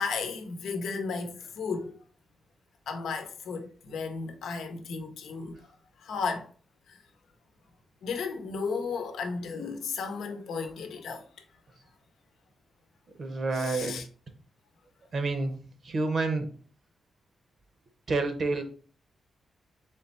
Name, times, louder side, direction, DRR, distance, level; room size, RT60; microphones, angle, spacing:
voice 1, 0.0-1.9 2.9-5.7 6.0-6.5 6.9-7.0 8.0-11.3 13.5-14.1, left 5 dB, 90° left, 0.8 m, -34 dB
voice 2, 13.2-14.0 15.1-15.5 15.8-16.5 18.1-18.6, right 3 dB, 50° right, 0.8 m, -28 dB
3.8 x 3.2 x 4.1 m
wide cardioid pair, 130°, 0 cm